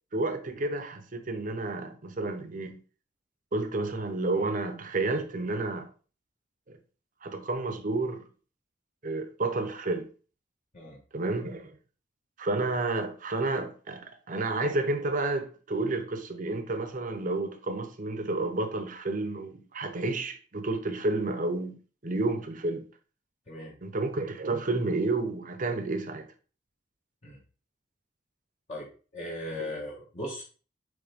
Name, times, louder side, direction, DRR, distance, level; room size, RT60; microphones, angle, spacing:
voice 1, 0.1-2.8 3.5-5.9 6.7-6.8 7.2-8.2 9.0-10.1 11.1-11.8 12.4-21.7 22.0-22.8 23.8-26.3, right 2 dB, 45° right, 0.9 m, -30 dB
voice 2, 28.7-30.4, left 1 dB, 35° left, 1.4 m, -38 dB
8.6 x 3.4 x 3.5 m
head